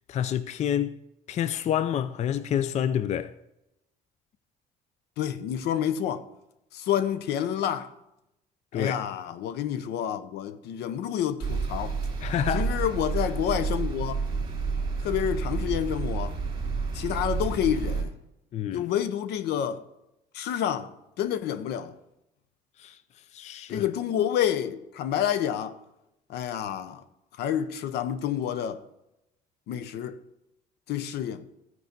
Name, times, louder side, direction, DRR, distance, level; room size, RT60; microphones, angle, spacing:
voice 1, 0.1-0.9 1.3-3.3 8.7-9.0 12.2-12.8 18.5-18.9 22.8-23.0 23.3-23.9, left 9 dB, 40° left, 0.4 m, -28 dB
voice 2, 5.2-6.2 6.7-7.9 8.7-12.0 12.5-14.2 15.0-16.4 16.9-18.1 18.7-19.8 20.3-21.9 23.7-25.8 26.3-27.0 27.4-28.8 29.7-30.2 30.9-31.4, left 10 dB, 75° left, 0.7 m, -29 dB
sound 1, 11.4-18.0, right 4 dB, 30° right, 2.0 m, -30 dB
13.5 x 4.7 x 5.2 m
cardioid pair, 110°, 17 cm